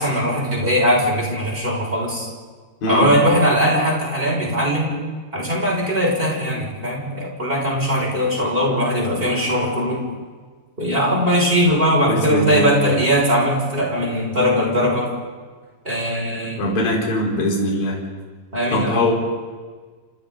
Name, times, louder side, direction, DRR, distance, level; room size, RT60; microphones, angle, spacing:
voice 1, 0.0-2.3 2.9-4.9 5.3-10.0 10.8-15.1 15.8-16.6 18.5-19.1, equal, 15° right, -2 dB, 5.9 m, -20 dB
voice 2, 12.0-12.7 16.6-17.9 18.7-19.1, left 1 dB, 60° left, -2 dB, 5.9 m, -21 dB
29.0 x 27.5 x 4.0 m, 1.5 s
omnidirectional pair, 4.5 m